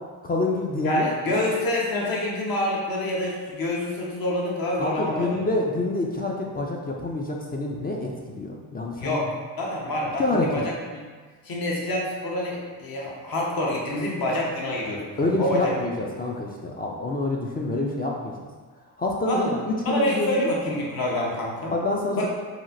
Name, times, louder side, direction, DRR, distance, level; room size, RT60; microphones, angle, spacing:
voice 1, 0.2-1.4 4.8-9.2 10.2-10.5 15.2-18.5 19.0-20.5 21.7-22.3, left 2 dB, 25° left, -1 dB, 0.3 m, -27 dB
voice 2, 0.8-5.4 9.0-9.3 9.6-11.1 11.4-15.7 19.2-19.6 19.8-21.7 22.1-22.3, left 1 dB, 55° left, -3 dB, 0.9 m, -27 dB
2.9 x 2.3 x 2.5 m, 1.4 s
supercardioid pair, 50°, 43 cm